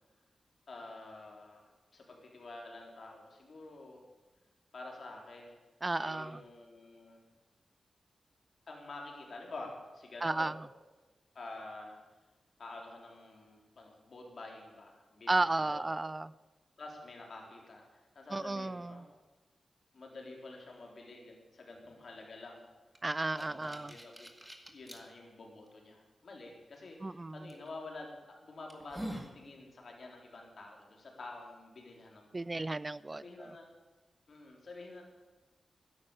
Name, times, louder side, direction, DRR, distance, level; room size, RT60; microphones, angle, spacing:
voice 1, 0.7-4.0 4.7-5.6 6.0-7.2 8.7-10.5 11.3-12.0 12.6-16.0 16.8-19.1 19.9-22.7 23.4-24.3 24.7-32.6 33.1-33.7 34.3-35.0, left 2 dB, 60° left, 0 dB, 3.7 m, -49 dB
voice 2, 5.8-6.4 10.2-10.6 15.3-16.3 18.3-19.0 23.0-23.9 27.0-27.4 32.3-33.5, right 2 dB, 25° right, 18 dB, 0.4 m, -33 dB
sound 1, 22.9-25.0 25.7-25.8 27.5-27.7 28.2-28.3 28.7-29.4, right 1 dB, 10° right, 1.9 m, -44 dB
13.0 x 11.0 x 8.2 m, 1.2 s
wide cardioid pair, 90°, 0 cm